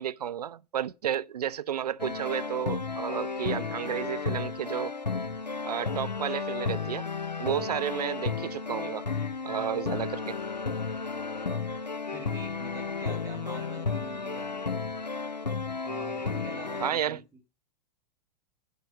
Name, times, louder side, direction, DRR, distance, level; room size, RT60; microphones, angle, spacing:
voice 1, 0.0-4.9 5.6-7.1 7.4-9.1 9.4-10.4 16.8-17.2, right 10 dB, 65° right, 0.5 m, -32 dB
sound 1, 2.0-16.9, left 4 dB, 85° left, 0.7 m, -33 dB
voice 2, 12.1-14.6 15.8-17.2, right 4 dB, 15° right, 1.8 m, -44 dB
10.5 x 5.4 x 6.4 m
figure-of-eight pair, 100°, 21 cm